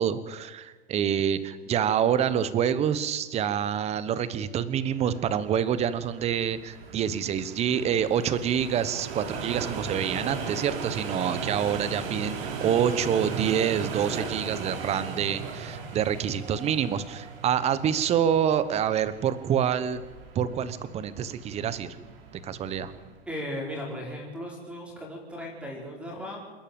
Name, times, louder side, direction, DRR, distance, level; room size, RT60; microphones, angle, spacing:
voice 1, 0.0-20.0 20.3-22.0 22.4-22.9, right 9 dB, 20° right, 14 dB, 1.1 m, -27 dB
sound 1, 4.9-23.2, right 5 dB, 60° right, 4.4 m, -37 dB
voice 2, 23.3-26.4, equal, 5° right, -1 dB, 5.3 m, -36 dB
28.5 x 11.5 x 8.9 m, 1.4 s
hypercardioid pair, 150°, 33 cm